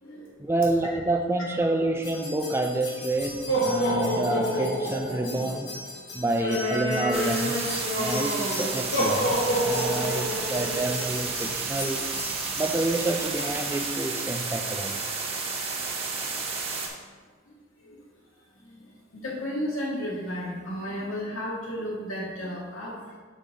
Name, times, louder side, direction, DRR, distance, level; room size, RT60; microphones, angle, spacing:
voice 1, 0.4-5.8 6.1-12.1 12.6-15.1, right 2 dB, 10° right, 4 dB, 0.3 m, -28 dB
sound 1, 2.0-13.9, equal, 55° left, 1.4 m, -29 dB
sound 2, 7.1-16.9, right 4 dB, 30° right, 0.8 m, -31 dB
voice 2, 18.6-23.0, equal, 85° left, -4 dB, 2.0 m, -33 dB
6.4 x 5.4 x 3.8 m, 1.5 s
head